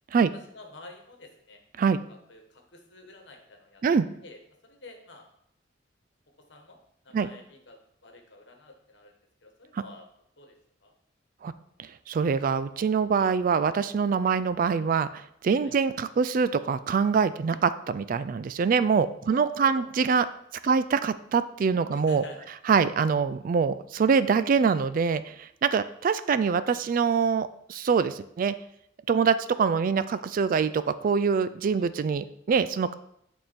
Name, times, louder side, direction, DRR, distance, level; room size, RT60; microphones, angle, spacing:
voice 1, 0.5-1.6 2.1-3.8 4.2-5.2 6.5-6.8 7.0-9.1 9.4-10.1 10.4-10.5 10.8-10.9 14.2-14.4 15.6-15.7 17.5-17.6 19.2-19.9 20.6-20.8 21.9-22.5 22.7-22.8 25.8-25.9 31.8-31.9, left 2 dB, 65° left, 4 dB, 1.2 m, -48 dB
voice 2, 12.1-20.3 20.6-22.2 22.7-28.5 29.1-32.9, right 5 dB, 45° right, 14 dB, 0.3 m, -24 dB
9.0 x 3.6 x 4.3 m, 0.73 s
head